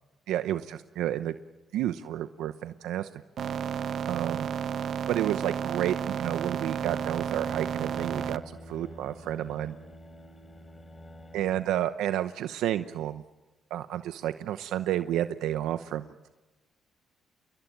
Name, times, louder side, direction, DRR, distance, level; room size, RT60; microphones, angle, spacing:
voice 1, 0.3-1.3 1.7-3.1 4.1-4.5 5.1-9.7 11.3-13.2 13.7-16.3, right 12 dB, 90° right, 10 dB, 0.9 m, -31 dB
sound 1, 3.4-8.4, right 8 dB, 65° right, 1.0 m, -32 dB
sound 2, 6.4-11.7, equal, 20° left, 4.6 m, -47 dB
28.5 x 21.5 x 9.1 m, 1.2 s
cardioid pair, 90°, 0 cm